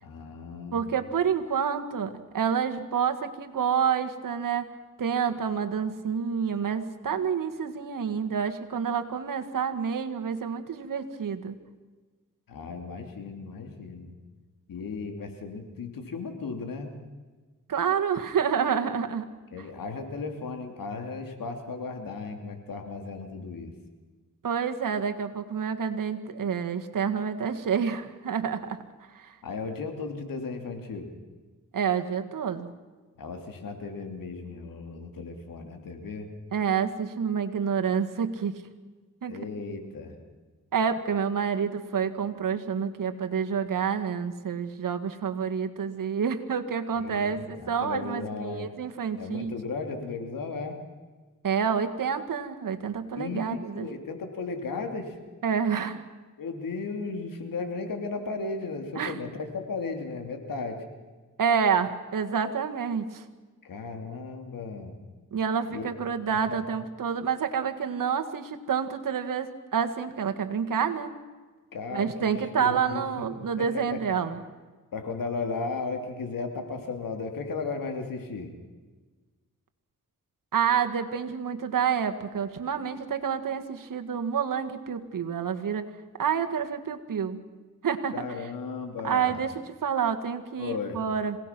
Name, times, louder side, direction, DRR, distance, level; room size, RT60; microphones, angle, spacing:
voice 1, 0.0-0.9 12.5-14.1 14.7-16.9 19.5-23.7 29.4-31.1 33.2-36.3 39.3-40.2 46.9-48.7 49.2-50.8 53.1-55.2 56.4-60.8 63.6-65.0 65.7-65.8 66.3-66.6 71.7-73.0 73.6-74.0 74.9-78.5 88.1-89.4 90.6-91.0, left 4 dB, 80° left, 5 dB, 3.2 m, -35 dB
voice 2, 0.7-4.7 5.0-11.6 17.7-19.3 24.4-28.8 29.1-29.3 31.7-32.7 36.5-38.5 39.2-39.4 40.7-49.5 51.4-53.9 55.4-56.0 59.0-59.2 61.4-63.2 65.3-71.1 71.9-74.4 80.5-85.9 86.2-87.4 87.8-88.1 89.0-89.5 89.8-91.4, right 7 dB, 70° right, 7 dB, 1.8 m, -28 dB
27.0 x 18.5 x 6.1 m, 1.3 s
cardioid pair, 60°, 33 cm